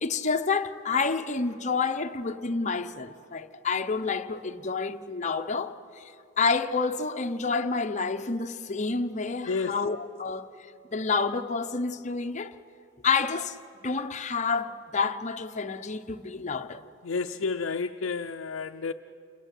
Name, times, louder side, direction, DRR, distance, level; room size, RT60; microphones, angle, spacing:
voice 1, 0.0-10.5 10.9-12.5 13.0-16.9, left 4 dB, 35° left, 0.8 m, -29 dB
voice 2, 9.5-9.9 17.0-18.9, left 4 dB, 75° left, 0.5 m, -31 dB
28.5 x 21.0 x 8.2 m
head